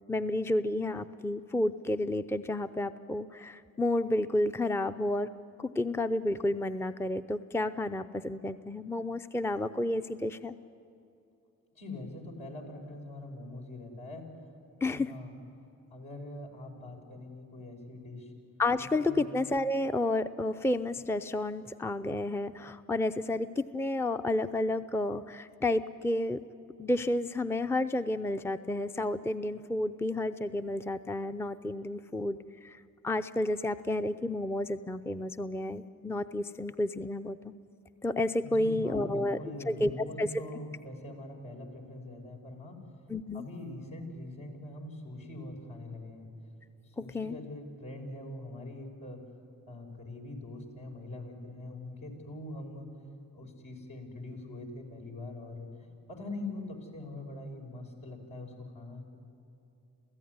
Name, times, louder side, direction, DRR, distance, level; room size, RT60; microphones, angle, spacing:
voice 1, 0.1-5.3 5.6-10.5 14.8-15.1 18.6-26.4 26.8-37.5 38.0-39.4 39.7-40.3 43.1-43.5 47.0-47.4, left 1 dB, 5° left, 10 dB, 0.6 m, -31 dB
voice 2, 11.8-14.2 14.9-15.3 15.9-18.3 19.1-19.3 38.4-42.8 43.3-46.3 47.0-49.2 49.7-52.9 53.3-55.7 56.1-59.2, left 2 dB, 70° left, -1 dB, 5.9 m, -43 dB
27.0 x 15.5 x 9.6 m, 2.8 s
cardioid pair, 65°, 36 cm